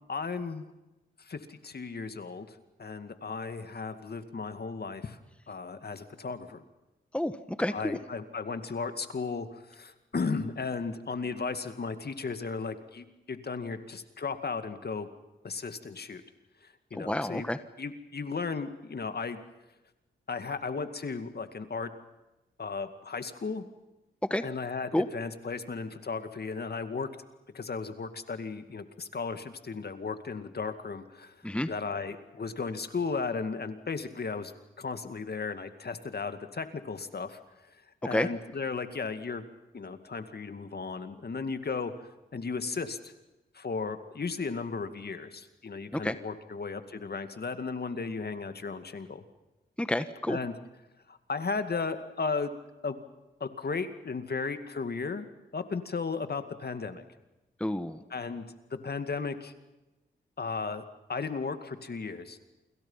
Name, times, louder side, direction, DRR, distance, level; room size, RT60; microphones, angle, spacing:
voice 1, 0.1-0.6 1.2-5.2 5.5-6.6 7.7-15.1 15.4-16.2 16.9-17.5 17.8-19.4 20.3-21.9 22.6-23.6 24.4-27.1 27.5-31.4 31.7-34.5 34.8-37.4 38.0-39.4 39.7-43.1 43.5-49.2 50.3-50.5 51.1-52.5 52.8-53.0 53.4-57.0 58.1-58.4 58.7-59.5 60.4-60.8 61.1-62.4, left 4 dB, 55° left, 9 dB, 2.3 m, -35 dB
voice 2, 7.1-8.0 16.9-17.6 24.3-24.4 24.9-25.1 31.4-31.7 38.1-38.3 45.9-46.1 49.8-50.4 57.6-58.0, left 1 dB, 5° left, 11 dB, 1.4 m, -29 dB
28.5 x 27.0 x 5.7 m, 1.0 s
cardioid pair, 65°, 20 cm